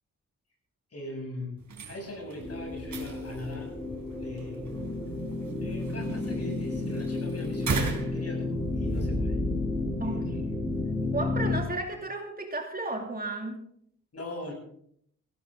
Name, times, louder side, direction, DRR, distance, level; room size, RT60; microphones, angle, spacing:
voice 1, 0.9-1.5 1.9-3.7 4.1-4.7 5.6-9.4 10.0-10.6 14.1-14.5, left 2 dB, 50° left, 0 dB, 8.0 m, -41 dB
sound 1, 1.6-9.1, right 4 dB, 65° right, 4.3 m, -38 dB
sound 2, 2.4-11.6, left 2 dB, 5° left, 7.1 m, -31 dB
voice 2, 10.0-10.4 11.1-13.6, right 2 dB, 30° right, 2 dB, 2.6 m, -33 dB
17.5 x 17.0 x 3.9 m, 0.66 s
cardioid pair, 100°, 31 cm